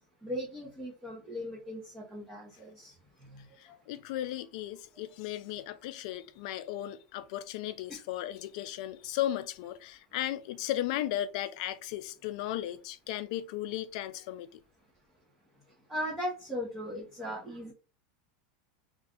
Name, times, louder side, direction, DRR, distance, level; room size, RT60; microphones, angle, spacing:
voice 1, 0.2-2.9 15.9-17.7, equal, 5° right, 0.8 m, -38 dB
voice 2, 3.6-14.6, left 13 dB, 60° left, 0.3 m, -36 dB
2.5 x 2.3 x 3.5 m
supercardioid pair, 140°, 4 cm